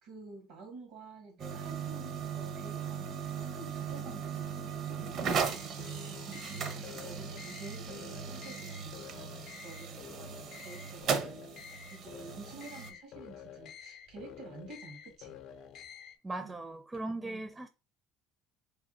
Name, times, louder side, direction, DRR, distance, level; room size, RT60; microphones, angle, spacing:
voice 1, 0.0-15.3 16.4-16.6 17.2-17.5, right 3 dB, 80° right, 1.1 m, -50 dB
sound 1, 1.4-12.9, right 6 dB, 55° right, 0.6 m, -38 dB
sound 2, 5.2-16.2, left 8 dB, 65° left, 0.6 m, -49 dB
voice 2, 16.2-17.7, right 2 dB, 20° right, 0.4 m, -38 dB
3.4 x 2.2 x 4.1 m
supercardioid pair, 80°, 0 cm